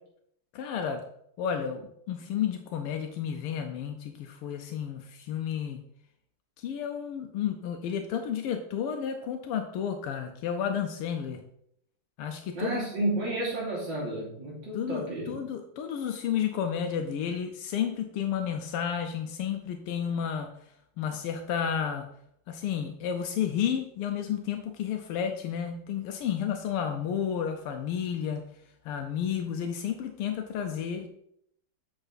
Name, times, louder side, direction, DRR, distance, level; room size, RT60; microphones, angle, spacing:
voice 1, 0.5-1.0 1.4-5.8 6.6-11.4 12.2-13.2 14.8-20.5 21.0-22.1 22.5-28.4 28.9-31.1, left 8 dB, 85° left, 5 dB, 1.6 m, -31 dB
voice 2, 12.5-15.4, right 3 dB, 55° right, -5 dB, 3.6 m, -32 dB
7.9 x 6.1 x 4.0 m, 0.72 s
omnidirectional pair, 2.4 m